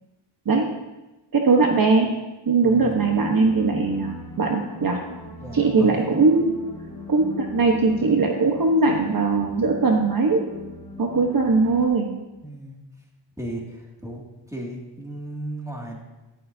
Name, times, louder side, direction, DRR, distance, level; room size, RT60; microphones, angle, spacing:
voice 1, 1.3-2.1 2.4-5.0 5.5-6.6 7.1-10.5 11.0-12.1, right 3 dB, 45° right, 1 dB, 1.2 m, -20 dB
voice 2, 2.6-2.9 5.4-6.1 12.4-12.8 13.4-16.0, right 1 dB, 5° right, -2 dB, 2.4 m, -35 dB
sound 1, 2.7-11.9, left 3 dB, 10° left, 2.1 m, -39 dB
11.5 x 11.5 x 2.8 m, 1.1 s
cardioid pair, 90°, 46 cm